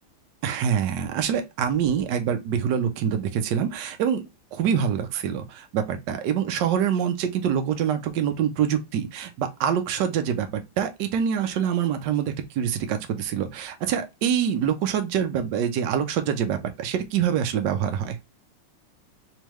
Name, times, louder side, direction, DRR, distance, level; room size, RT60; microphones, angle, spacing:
voice 1, 0.4-4.2 4.5-18.2, right 8 dB, 65° right, 1.2 m, -25 dB
3.6 x 3.3 x 3.0 m
omnidirectional pair, 2.2 m